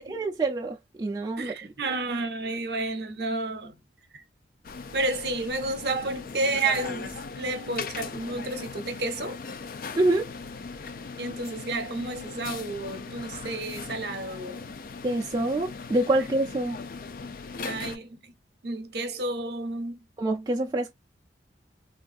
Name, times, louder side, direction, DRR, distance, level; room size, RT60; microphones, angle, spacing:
voice 1, 0.0-1.5 9.9-10.3 15.0-16.8 20.2-20.9, right 2 dB, 20° right, 0.3 m, -26 dB
voice 2, 1.4-3.8 4.1-4.2 4.9-9.4 11.2-14.7 17.6-18.3 18.6-20.1, right 2 dB, 60° right, 0.7 m, -31 dB
sound 1, 4.6-18.0, left 4 dB, 50° left, 0.4 m, -39 dB
3.5 x 2.4 x 2.4 m
head